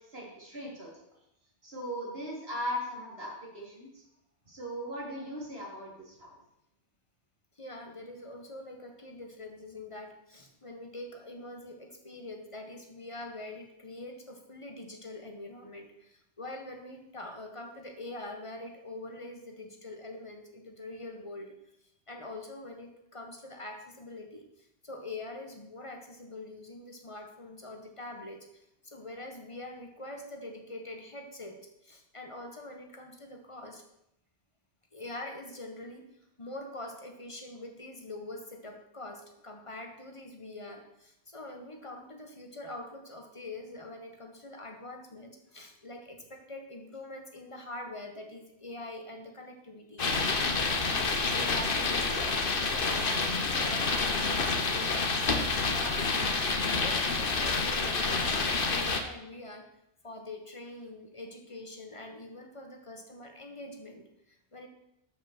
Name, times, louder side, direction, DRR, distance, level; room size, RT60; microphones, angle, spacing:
voice 1, 0.1-1.0 1.6-4.0 4.5-6.3, equal, 60° right, -4 dB, 4.0 m, -38 dB
voice 2, 7.5-21.5 22.1-33.8 34.9-36.0 36.4-56.3 56.7-59.7 60.0-64.7, left 2 dB, 25° left, 4 dB, 1.6 m, -44 dB
sound 1, 50.0-59.0, left 4 dB, 50° left, 1.3 m, -28 dB
13.0 x 6.2 x 6.3 m, 0.80 s
omnidirectional pair, 1.2 m